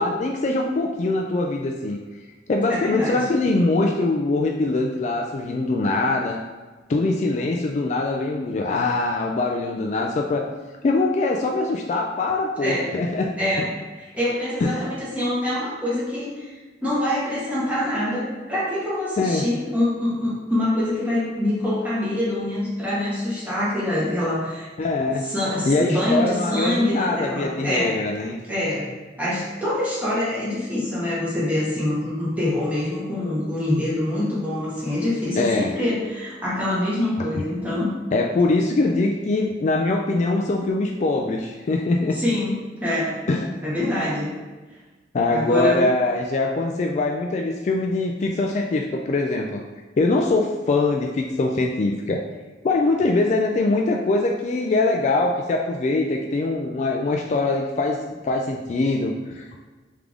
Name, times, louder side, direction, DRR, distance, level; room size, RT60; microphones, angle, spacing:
voice 1, 0.0-2.0 2.5-6.4 6.9-10.4 10.8-13.3 13.6-13.7 14.6-14.8 19.2-19.5 24.8-25.2 25.7-28.4 35.4-35.7 37.4-37.5 38.1-42.2 43.3-43.4 45.1-49.6 50.0-52.2 52.6-59.4, left 2 dB, 40° left, 1 dB, 0.3 m, -23 dB
voice 2, 2.7-3.3 12.6-12.9 13.4-24.7 25.2-28.0 28.4-28.9 29.2-38.0 42.1-43.2 43.6-44.4 45.3-45.9, left 1 dB, 10° right, -8 dB, 1.3 m, -25 dB
3.6 x 3.4 x 3.5 m, 1.3 s
head